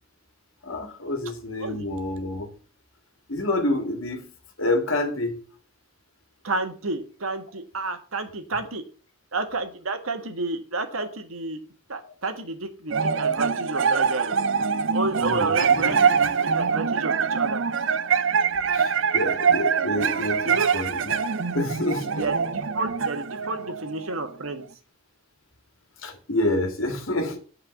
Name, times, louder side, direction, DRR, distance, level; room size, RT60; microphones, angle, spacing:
voice 1, 0.6-2.5 3.3-4.3 4.6-5.4 10.9-11.1 12.0-12.1 15.3-15.9 18.7-22.2 26.0-27.4, left 1 dB, 70° left, 2.1 m, -28 dB
voice 2, 6.4-8.8 9.3-11.6 11.9-14.4 14.9-17.6 20.4-20.7 22.2-24.6, right 3 dB, 80° right, 1.5 m, -30 dB
sound 1, 12.9-24.5, right 6 dB, 60° right, 0.5 m, -24 dB
8.5 x 4.8 x 7.1 m
head